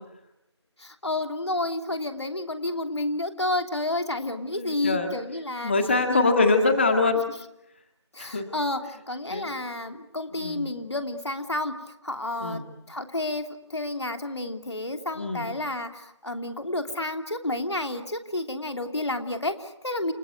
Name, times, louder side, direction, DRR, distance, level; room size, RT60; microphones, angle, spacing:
voice 1, 0.8-5.7 6.1-6.5 8.1-11.8 12.0-12.6 12.9-13.5 13.7-20.1, left 2 dB, 70° left, 6 dB, 3.0 m, -30 dB
voice 2, 4.6-5.1 5.6-7.2 8.2-8.5 9.3-9.5 10.4-10.7 12.4-12.7 15.2-15.5, left 3 dB, 25° left, 5 dB, 1.9 m, -24 dB
29.0 x 19.5 x 9.3 m, 0.84 s
figure-of-eight pair, 170°, 15 cm